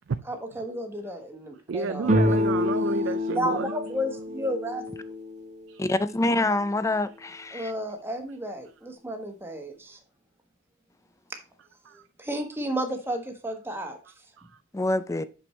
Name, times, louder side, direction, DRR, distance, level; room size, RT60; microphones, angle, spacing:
voice 1, 0.3-2.4 3.3-4.8 7.5-10.0 11.3-11.4 12.2-14.0, equal, 10° right, 1.2 m, -32 dB
voice 2, 1.7-3.7 5.7-5.8 11.8-12.1 14.1-14.6, right 5 dB, 65° right, 0.4 m, -32 dB
sound 1, 2.0-5.7, left 1 dB, 35° right, 0.9 m, -27 dB
voice 3, 5.8-7.7 14.7-15.2, left 2 dB, 15° left, 0.4 m, -26 dB
6.1 x 6.1 x 3.1 m
head